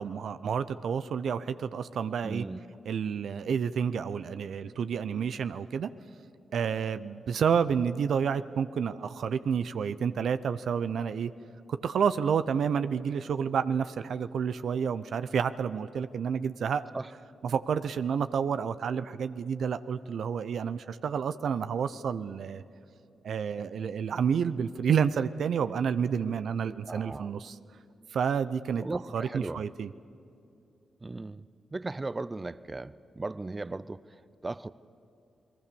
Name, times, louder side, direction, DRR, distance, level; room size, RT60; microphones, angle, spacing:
voice 1, 0.0-2.4 2.9-5.9 6.5-11.3 11.7-16.8 17.4-22.6 23.2-27.6 28.1-28.8 29.1-29.9, right 7 dB, 70° right, 13 dB, 0.7 m, -29 dB
voice 2, 2.2-2.6 16.9-17.1 26.9-27.3 28.8-29.7 31.0-34.7, right 2 dB, 30° right, 17 dB, 0.7 m, -37 dB
29.5 x 20.0 x 7.0 m, 2.7 s
supercardioid pair, 40°, 0 cm